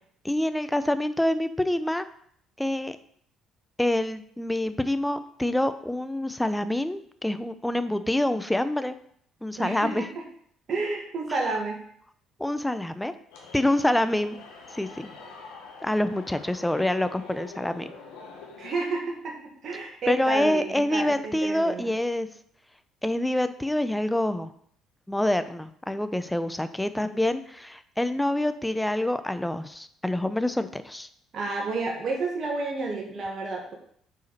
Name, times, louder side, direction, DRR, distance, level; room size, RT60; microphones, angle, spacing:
voice 1, 0.2-2.0 2.6-3.0 3.8-8.9 9.4-10.1 12.4-13.1 13.5-14.4 14.7-15.1 15.8-17.9 20.1-22.3 23.0-24.5 25.1-31.1, left 1 dB, 5° left, 11 dB, 0.7 m, -26 dB
voice 2, 9.6-10.1 10.7-11.8 18.6-19.4 19.6-21.9 31.3-33.7, right 3 dB, 50° right, 0 dB, 1.8 m, -30 dB
sound 1, 13.3-18.8, left 4 dB, 80° left, 1.6 m, -45 dB
8.1 x 5.0 x 4.3 m, 0.65 s
hypercardioid pair, 60°, 0 cm